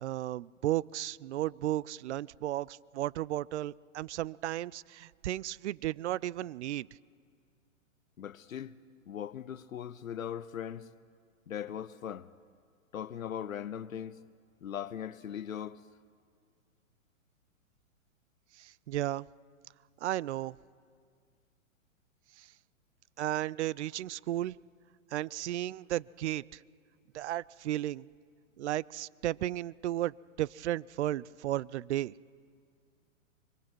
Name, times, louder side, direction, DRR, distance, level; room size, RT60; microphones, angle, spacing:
voice 1, 0.0-6.9 18.6-19.3 20.0-20.6 22.4-22.5 23.2-24.6 25.1-26.6 27.1-28.1 28.6-32.1, right 14 dB, 60° right, 0.5 m, -34 dB
voice 2, 8.2-8.7 9.1-10.9 11.5-12.3 12.9-14.2 14.6-15.8, left 9 dB, 85° left, 0.8 m, -39 dB
25.5 x 23.0 x 4.6 m
hypercardioid pair, 125°, 40 cm